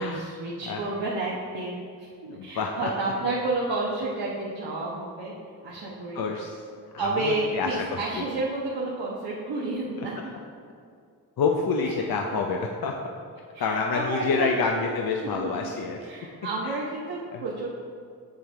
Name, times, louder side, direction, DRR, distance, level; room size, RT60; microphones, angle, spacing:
voice 1, 0.0-5.3 5.6-6.2 7.0-10.2 11.8-11.9 12.3-12.6 13.5-14.6 15.2-15.7 16.1-17.7, right 2 dB, 75° right, -5 dB, 1.2 m, -31 dB
voice 2, 2.3-2.9 6.1-6.6 6.9-8.2 11.4-12.9 13.6-16.1 16.6-16.8 17.3-17.4, left 4 dB, 60° left, 1 dB, 0.7 m, -28 dB
7.1 x 7.0 x 3.4 m, 2.3 s
supercardioid pair, 45°, 41 cm